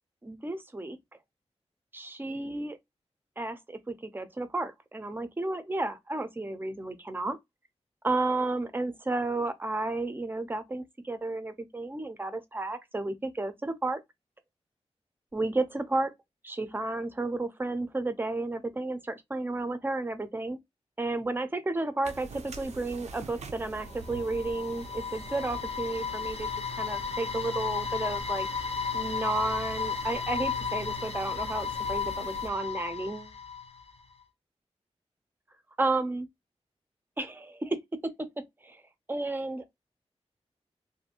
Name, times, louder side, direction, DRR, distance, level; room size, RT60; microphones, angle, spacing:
voice 1, 0.2-1.0 1.9-2.8 3.4-7.4 8.0-14.0 15.3-16.1 16.4-20.6 21.0-26.5 26.8-28.5 28.9-33.3 35.8-36.3 37.2-38.8 39.1-39.7, right 2 dB, 20° right, 0.5 m, -32 dB
sound 1, 22.0-32.5, right 3 dB, 85° right, 0.5 m, -45 dB
sound 2, 23.8-33.9, left 6 dB, 60° left, 0.5 m, -34 dB
2.6 x 2.5 x 2.7 m
wide cardioid pair, 105°, 11 cm